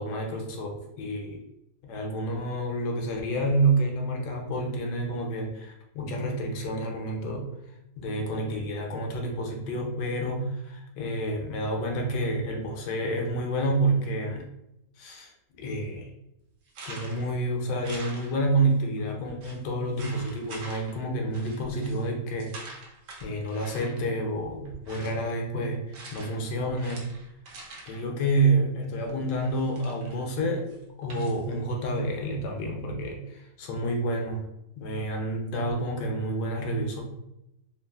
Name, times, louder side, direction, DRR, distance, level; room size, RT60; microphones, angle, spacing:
voice 1, 0.0-1.4 1.8-7.5 8.0-14.5 15.0-15.3 15.6-16.1 16.9-22.8 23.2-27.1 27.9-30.7 31.0-34.5 34.8-37.0, right 1 dB, 75° left, 1 dB, 1.2 m, -29 dB
sound 1, 16.7-17.3 17.8-18.7 19.0-19.1 19.4-19.6 20.0-21.0 21.3-22.0 22.4-24.1 24.6-25.3 25.9-26.4 26.7-28.0 29.1-30.2 30.7-31.4, right 2 dB, 70° right, 0.8 m, -45 dB
3.1 x 2.3 x 2.2 m, 0.85 s
omnidirectional pair, 2.0 m